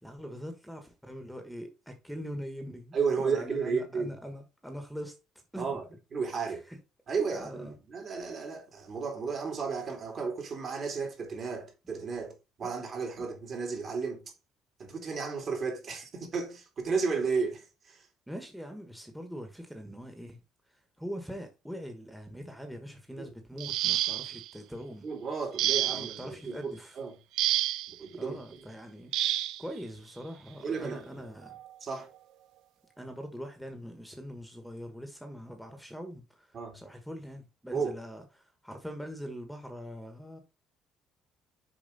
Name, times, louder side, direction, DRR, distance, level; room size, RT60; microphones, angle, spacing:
voice 1, 0.0-5.2 5.5-5.8 6.5-6.8 7.3-7.7 18.3-20.4 20.7-25.1 25.9-27.0 28.1-29.3 29.6-31.6 33.0-40.4, equal, ahead, 1.3 m, -42 dB
voice 2, 2.9-4.1 5.6-5.8 6.1-6.6 7.1-14.3 14.8-18.1 23.2-23.3 25.0-27.1 27.9-28.4 30.6-31.1 31.8-32.1 36.5-36.8 37.7-38.0, right 5 dB, 45° right, 3.0 m, -33 dB
sound 1, 23.6-24.5 25.6-26.2 27.4-27.9 29.1-29.6 30.8-30.9 31.5-31.7, right 13 dB, 80° right, 0.4 m, -29 dB
7.0 x 4.9 x 4.0 m
cardioid pair, 115°, 0 cm